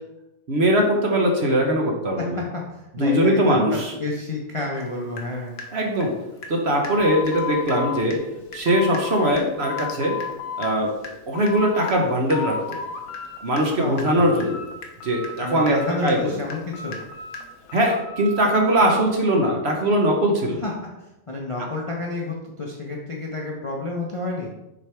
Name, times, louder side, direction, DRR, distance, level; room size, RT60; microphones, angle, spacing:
voice 1, 0.5-2.4 2.9-3.9 5.7-6.1 6.5-8.2 8.5-10.2 10.6-10.9 11.3-12.8 13.4-14.6 15.0-16.4 17.7-20.6, right 1 dB, 50° right, 1 dB, 1.1 m, -21 dB
voice 2, 2.2-2.6 3.0-5.5 13.8-14.3 15.4-17.0 20.6-20.7 21.3-24.5, left 2 dB, 30° left, -2 dB, 0.6 m, -29 dB
Water tap faucet / Drip, 4.7-4.9 5.2-6.6 6.8-7.0 7.3-7.4 7.7-7.8 8.1-8.3 8.5-18.0, left 3 dB, 70° left, 1.3 m, -40 dB
sound 1, 6.9-9.4 9.6-10.7 11.1-12.0 12.3-13.4 13.7-14.7 15.0-16.3 16.7-18.8, left 6 dB, 90° left, 1.3 m, -34 dB
6.6 x 4.5 x 3.3 m, 0.94 s
omnidirectional pair, 1.6 m